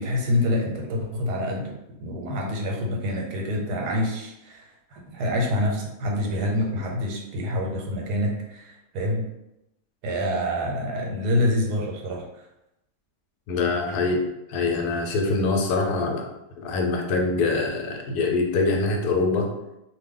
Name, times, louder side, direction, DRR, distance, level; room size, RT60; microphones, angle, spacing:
voice 1, 0.0-4.6 4.9-9.3 10.0-12.2, left 1 dB, 85° right, 0 dB, 1.2 m, -26 dB
voice 2, 13.5-14.2 14.5-16.2 16.6-19.5, left 3 dB, 80° left, 2 dB, 1.1 m, -24 dB
2.6 x 2.2 x 3.6 m, 0.88 s
omnidirectional pair, 1.7 m